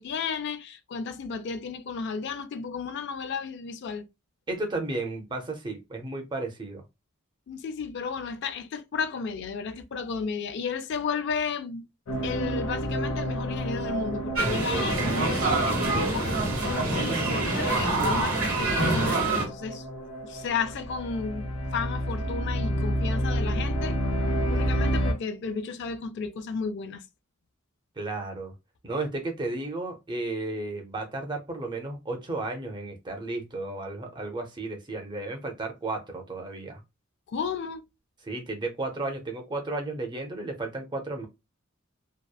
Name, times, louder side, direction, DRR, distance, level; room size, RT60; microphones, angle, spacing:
voice 1, 0.0-4.0 7.5-11.9 12.2-19.8 20.2-24.0 24.5-27.0 37.3-37.8, left 5 dB, 55° left, 0.3 m, -33 dB
voice 2, 4.5-6.8 28.0-28.5 28.8-36.8 38.2-41.3, right 2 dB, 20° right, 0.5 m, -33 dB
sound 1, 12.1-25.1, equal, 80° left, 0.7 m, -30 dB
sound 2, 14.4-19.5, right 2 dB, 90° right, 1.0 m, -26 dB
2.8 x 2.0 x 2.2 m
head